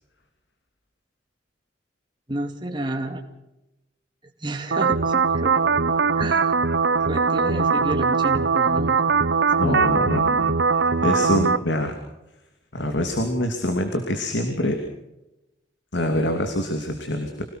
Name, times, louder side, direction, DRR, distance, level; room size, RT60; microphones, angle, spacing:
voice 1, 2.3-3.2 4.4-5.7 6.2-6.7 7.1-9.2 9.6-9.9, right 1 dB, 25° right, 3 dB, 2.2 m, -31 dB
sound 1, 4.7-11.6, right 5 dB, 80° right, 0.8 m, -21 dB
voice 2, 9.6-10.6 11.0-12.0 12.7-14.8 15.9-17.4, left 1 dB, 90° left, 5 dB, 2.8 m, -25 dB
26.0 x 18.0 x 6.0 m, 0.93 s
head